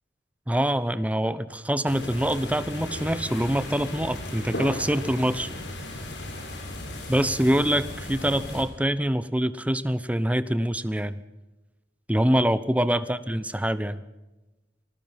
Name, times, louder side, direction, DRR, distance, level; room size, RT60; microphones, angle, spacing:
voice 1, 0.5-5.5 7.1-11.2 12.1-14.0, equal, 10° right, 14 dB, 0.9 m, -25 dB
sound 1, 1.8-8.6, left 1 dB, 75° left, 5.8 m, -36 dB
26.5 x 20.0 x 5.8 m, 1.1 s
head